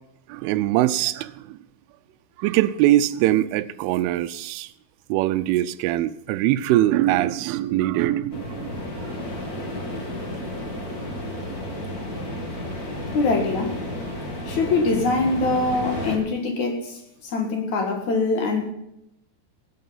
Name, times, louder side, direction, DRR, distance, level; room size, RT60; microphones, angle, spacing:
voice 1, 0.3-1.6 2.4-4.7 5.1-8.7, right 14 dB, 85° right, 3.0 m, -22 dB
sound 1, 8.3-16.2, left 1 dB, 40° left, 1.3 m, -32 dB
voice 2, 13.1-13.8 14.5-18.7, left 3 dB, 55° left, 2.1 m, -23 dB
18.0 x 8.5 x 5.6 m
omnidirectional pair, 5.7 m